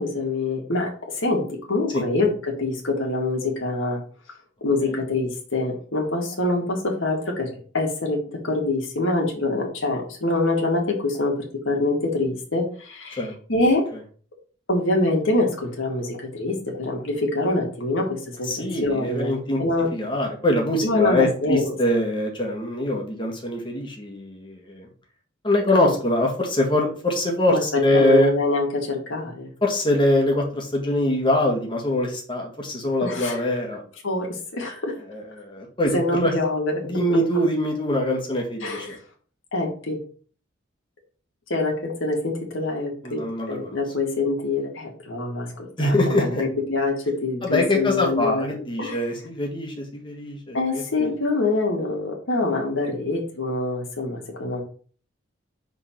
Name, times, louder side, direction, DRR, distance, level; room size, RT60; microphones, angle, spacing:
voice 1, 0.0-4.0 4.6-11.4 11.7-13.2 13.5-13.9 14.7-18.5 18.8-19.3 19.6-19.9 20.8-21.7 25.7-25.9 27.5-29.5 33.0-33.4 34.0-34.3 34.5-35.0 35.9-37.2 38.6-39.0 39.5-40.0 41.5-49.0 50.5-54.6, left 2 dB, 75° left, 0 dB, 1.9 m, -25 dB
voice 2, 18.4-19.6 19.9-24.9 25.4-28.3 29.6-33.8 35.1-36.3 36.8-39.0 43.0-43.8 45.8-46.4 47.4-51.1, left 1 dB, 25° left, 1 dB, 1.6 m, -23 dB
5.4 x 3.9 x 5.7 m, 0.42 s
head